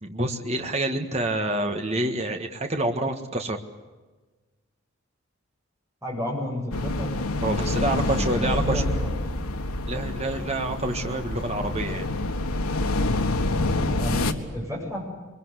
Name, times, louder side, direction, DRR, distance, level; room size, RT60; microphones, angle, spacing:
voice 1, 0.0-3.6 7.4-8.8 9.9-12.0, right 1 dB, 30° right, 5 dB, 1.7 m, -27 dB
voice 2, 6.0-7.1 7.8-9.4 13.9-15.0, equal, 15° right, -2 dB, 7.8 m, -32 dB
sound 1, 6.7-14.3, left 2 dB, 90° left, 1.7 m, -27 dB
23.0 x 22.5 x 8.2 m, 1.3 s
head